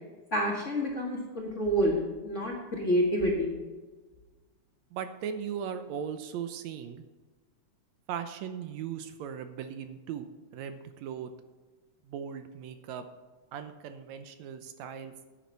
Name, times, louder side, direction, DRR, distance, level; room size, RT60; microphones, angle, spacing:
voice 1, 0.3-3.6, equal, 30° left, -2 dB, 1.5 m, -28 dB
voice 2, 4.9-7.0 8.1-10.3 10.5-11.3 12.1-13.1 13.5-15.1, right 8 dB, 80° right, 9 dB, 1.9 m, -38 dB
10.5 x 9.4 x 4.5 m, 1.3 s
omnidirectional pair, 3.3 m